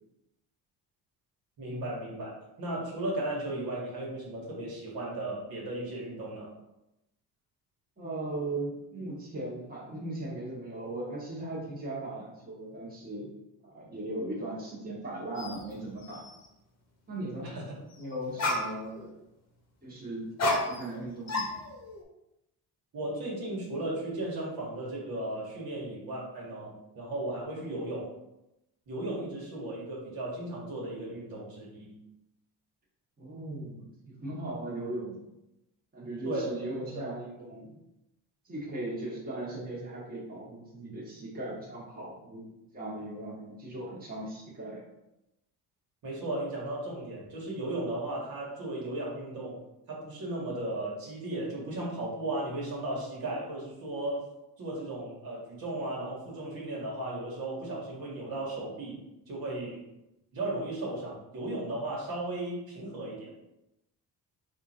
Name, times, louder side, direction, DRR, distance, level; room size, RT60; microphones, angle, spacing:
voice 1, 1.6-6.5 17.4-17.7 22.9-28.1 28.9-32.0 36.2-36.5 36.9-37.0 46.0-49.6 49.9-54.2 54.6-59.8 60.3-63.3, right 1 dB, 60° right, -4 dB, 1.5 m, -36 dB
voice 2, 8.0-13.3 13.6-16.3 17.1-17.5 17.9-19.2 19.8-21.5 33.2-35.2 35.9-37.8 38.4-42.5 42.7-44.8, right 1 dB, 20° right, -6 dB, 1.3 m, -38 dB
sound 1, 15.4-15.6 16.0-16.5 18.0-18.1 18.4-19.1 20.4-21.0 21.3-22.0, left 1 dB, 40° left, 0.9 m, -31 dB
3.7 x 2.5 x 4.2 m, 0.91 s
cardioid pair, 115°, 40 cm